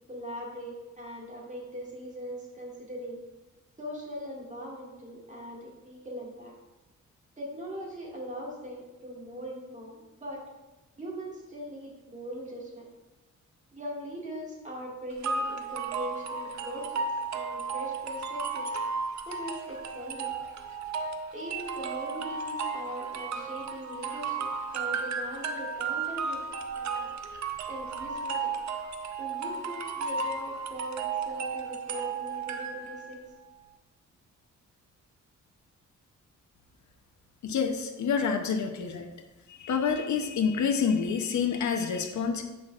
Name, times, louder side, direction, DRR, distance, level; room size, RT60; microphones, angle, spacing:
voice 1, 0.1-3.2 3.8-6.5 7.4-10.4 11.0-12.9 13.7-17.0 17.3-18.7 19.3-20.3 21.3-27.2 27.7-28.6 29.2-33.2, equal, 25° right, -3 dB, 1.9 m, -40 dB
sound 1, 15.2-33.2, right 4 dB, 65° right, 0.6 m, -34 dB
voice 2, 37.4-39.1 39.5-42.4, left 6 dB, 70° left, 5 dB, 0.7 m, -28 dB
8.4 x 5.7 x 2.4 m, 1.1 s
cardioid pair, 110°, 31 cm